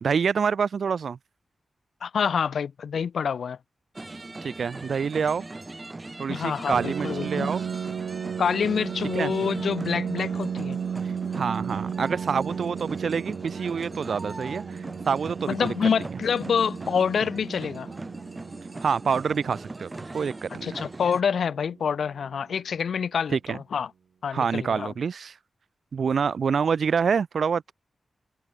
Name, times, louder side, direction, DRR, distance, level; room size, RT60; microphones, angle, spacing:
voice 1, 0.0-1.2 4.4-5.4 6.2-7.6 9.1-9.3 11.0-15.5 18.8-20.8 23.3-23.6 24.3-25.3 25.9-27.6, right 6 dB, 65° right, 1.2 m, -27 dB
voice 2, 2.0-3.6 6.3-7.5 8.4-10.8 15.5-17.9 20.5-23.9 24.2-24.9, left 7 dB, 80° left, 0.9 m, -27 dB
sound 1, 3.9-21.2, right 2 dB, 20° right, 6.0 m, -40 dB
Piano, 6.7-22.1, right 7 dB, 85° right, 4.4 m, -35 dB
wide cardioid pair, 140°, 0 cm